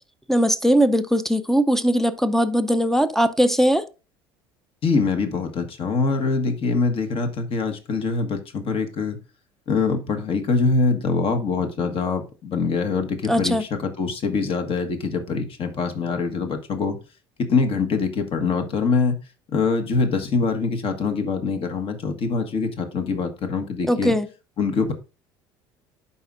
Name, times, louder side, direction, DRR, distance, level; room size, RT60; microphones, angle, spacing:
voice 1, 0.3-3.8 13.3-13.6 23.9-24.3, equal, 5° left, 0.6 m, -20 dB
voice 2, 4.8-9.2 9.7-17.0 17.4-19.2 19.5-24.2 24.6-24.9, left 4 dB, 45° left, 1.4 m, -24 dB
11.0 x 4.2 x 2.5 m
hypercardioid pair, 65°, 13 cm